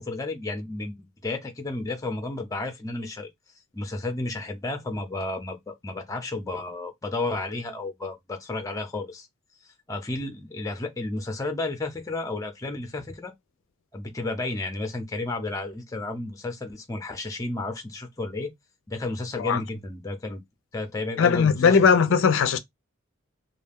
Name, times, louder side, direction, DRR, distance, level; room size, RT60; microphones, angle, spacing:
voice 1, 0.0-3.3 3.7-9.3 9.9-13.3 13.9-18.5 18.9-20.4 20.7-21.8, left 2 dB, 15° left, 0.6 m, -32 dB
voice 2, 21.2-22.6, left 6 dB, 65° left, 0.4 m, -19 dB
2.3 x 2.2 x 3.4 m
head